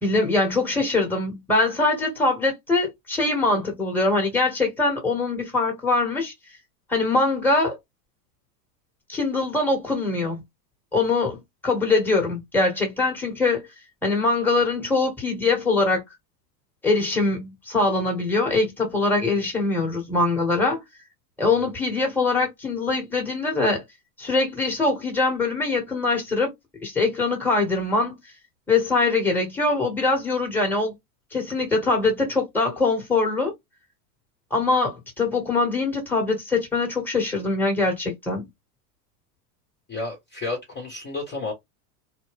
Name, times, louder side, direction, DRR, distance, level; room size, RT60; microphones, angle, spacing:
voice 1, 0.0-6.3 6.9-7.7 9.1-10.4 10.9-13.6 14.0-16.0 16.8-20.8 21.4-23.8 24.2-26.5 26.8-28.2 28.7-30.9 31.3-33.5 34.5-38.5, left 3 dB, 5° left, 1.6 m, -23 dB
voice 2, 39.9-41.5, left 3 dB, 20° left, 1.3 m, -31 dB
2.7 x 2.2 x 3.4 m
hypercardioid pair, 105°, 47 cm